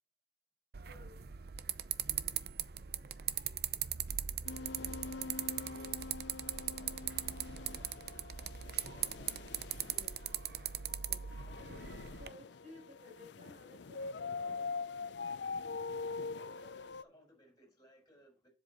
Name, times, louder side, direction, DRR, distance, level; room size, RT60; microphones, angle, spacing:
sound 1, 0.7-12.3, right 10 dB, 60° right, 0.6 m, -40 dB
voice 1, 0.9-1.3 9.8-10.5 11.1-11.3 12.2-14.7, left 2 dB, 45° right, 4.6 m, -56 dB
sound 2, 4.4-17.0, left 4 dB, 75° left, 0.5 m, -44 dB
voice 2, 4.4-6.1 6.4-9.9 16.3-18.5, equal, 20° left, 4.5 m, -64 dB
7.8 x 7.3 x 4.0 m
head